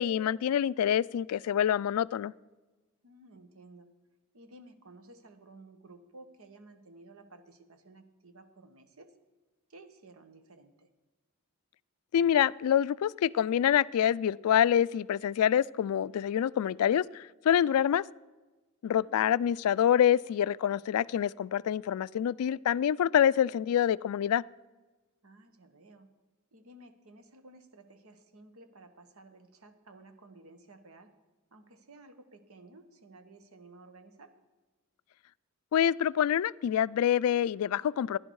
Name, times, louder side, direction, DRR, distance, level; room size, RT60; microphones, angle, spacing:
voice 1, 0.0-2.3 12.1-18.0 18.8-24.4 35.7-38.2, left 9 dB, 85° left, 0.3 m, -26 dB
voice 2, 3.0-3.9 4.3-9.1 9.7-10.9 18.9-19.4 25.2-26.1 26.5-31.1 31.5-34.3, right 2 dB, 75° right, 1.3 m, -54 dB
15.5 x 11.0 x 4.7 m
head